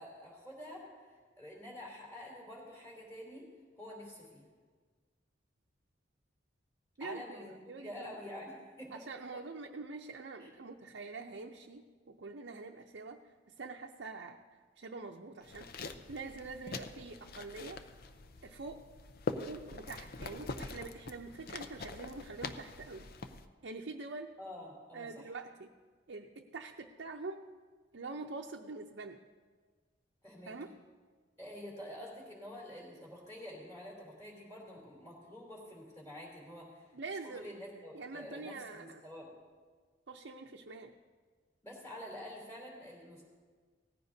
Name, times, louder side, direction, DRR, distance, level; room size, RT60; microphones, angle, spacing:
voice 1, 0.0-3.5 3.8-4.5 7.0-9.0 10.4-10.5 24.4-25.3 30.2-30.6 31.4-36.9 37.2-39.3 41.6-43.2, left 1 dB, 15° left, -3 dB, 3.2 m, -48 dB
voice 2, 7.0-8.1 8.9-13.2 13.6-14.4 14.8-17.8 18.4-18.8 19.3-23.1 23.6-24.3 24.9-25.7 26.1-27.4 27.9-29.2 30.5-30.7 36.9-37.5 37.9-39.0 40.1-41.0, right 3 dB, 70° right, 2 dB, 0.6 m, -45 dB
sound 1, 15.4-23.4, left 3 dB, 55° left, 0.6 m, -44 dB
17.5 x 14.5 x 2.7 m, 1.5 s
head